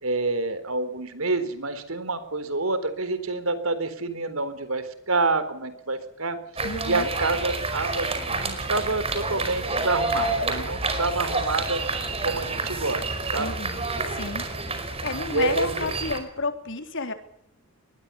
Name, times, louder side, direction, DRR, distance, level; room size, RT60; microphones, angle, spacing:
voice 1, 0.0-6.4 6.8-11.8 12.2-13.5 15.3-15.8, right 3 dB, 80° right, 12 dB, 4.1 m, -27 dB
voice 2, 6.6-7.1 13.4-14.5 15.0-17.1, left 3 dB, 60° left, 7 dB, 3.8 m, -31 dB
sound 1, 6.6-16.2, right 3 dB, 30° right, 5.3 m, -29 dB
24.0 x 20.5 x 7.1 m, 0.70 s
head